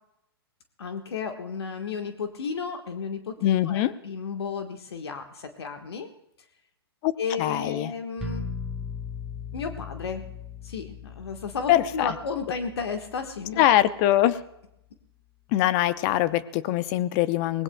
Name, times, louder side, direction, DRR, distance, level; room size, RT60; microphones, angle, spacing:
voice 1, 0.8-6.1 7.2-8.5 9.5-10.2 10.6-13.6, left 5 dB, 75° left, 5 dB, 1.4 m, -33 dB
voice 2, 3.4-3.9 7.0-7.1 7.4-7.9 11.7-12.1 13.6-14.4 15.5-17.6, left 13 dB, 40° left, 15 dB, 0.7 m, -23 dB
sound 1, 8.2-14.0, left 5 dB, 5° right, 1.3 m, -38 dB
24.0 x 19.0 x 2.3 m, 0.80 s
hypercardioid pair, 115°, 13 cm